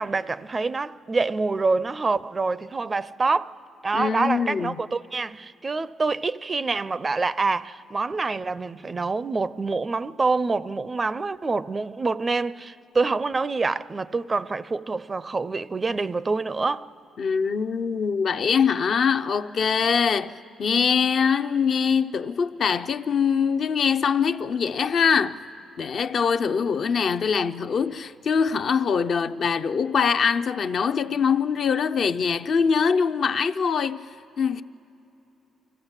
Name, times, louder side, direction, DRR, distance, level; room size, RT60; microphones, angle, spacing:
voice 1, 0.0-3.5 3.8-16.9, right 3 dB, 30° right, 0.4 m, -26 dB
voice 2, 3.9-4.7 17.2-25.4 25.8-34.1 34.4-34.6, left 6 dB, 55° left, 0.6 m, -23 dB
24.5 x 15.0 x 8.1 m
cardioid pair, 90°, 0 cm